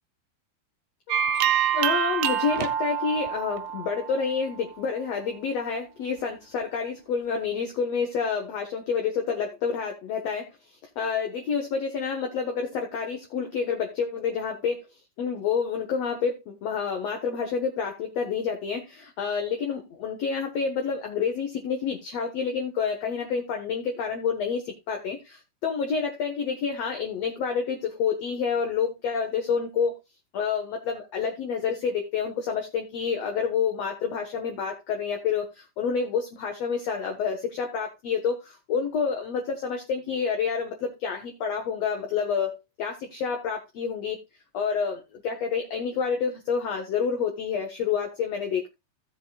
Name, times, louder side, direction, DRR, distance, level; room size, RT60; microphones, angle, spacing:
sound 1, 1.1-4.6, right 9 dB, 85° right, 3.0 m, -26 dB
voice 1, 1.7-10.5 10.9-14.9 15.2-30.0 30.3-44.2 44.5-48.7, left 6 dB, 60° left, 3 dB, 1.8 m, -28 dB
16.0 x 7.8 x 2.3 m, 0.22 s
omnidirectional pair, 4.6 m